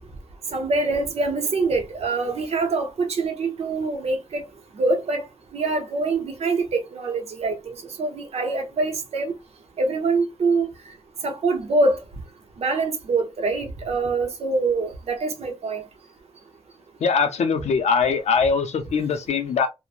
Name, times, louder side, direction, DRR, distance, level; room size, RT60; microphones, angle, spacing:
voice 1, 0.5-4.4 4.7-5.2 5.5-9.3 9.8-10.7 11.2-12.0 12.6-15.8, right 3 dB, 70° right, 0.8 m, -24 dB
voice 2, 17.0-19.7, left 5 dB, 85° left, 0.5 m, -22 dB
3.0 x 2.1 x 2.4 m
wide cardioid pair, 170°, 11 cm